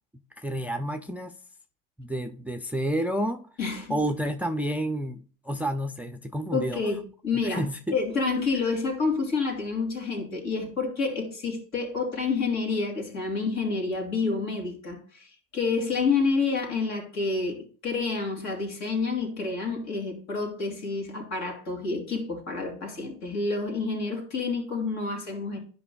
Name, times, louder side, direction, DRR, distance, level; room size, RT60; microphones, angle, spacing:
voice 1, 0.4-1.3 2.0-3.5 3.9-6.8 7.4-8.0, right 1 dB, 5° right, 0.4 m, -30 dB
voice 2, 3.6-4.0 6.5-7.6 7.9-25.6, left 4 dB, 60° left, 2.6 m, -29 dB
11.0 x 5.2 x 2.3 m
supercardioid pair, 90°, 31 cm